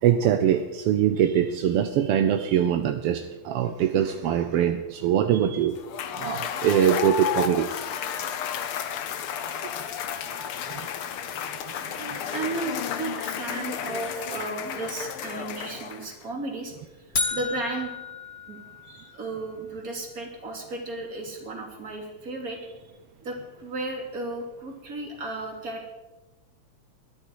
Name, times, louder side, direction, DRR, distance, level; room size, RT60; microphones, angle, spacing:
voice 1, 0.0-5.8 6.2-7.7 9.4-9.6 10.7-10.9 11.6-12.2 18.9-19.1, right 9 dB, 70° right, 7 dB, 1.4 m, -23 dB
Cheering / Applause / Crowd, 5.8-16.2, left 8 dB, 65° left, 1.5 m, -32 dB
voice 2, 12.3-17.9 18.5-18.6 19.1-22.9 23.2-25.9, right 2 dB, 30° right, 1 dB, 3.0 m, -34 dB
sound 1, 17.1-19.3, left 4 dB, 45° left, 0.7 m, -32 dB
21.0 x 12.5 x 4.7 m, 1.1 s
omnidirectional pair, 3.4 m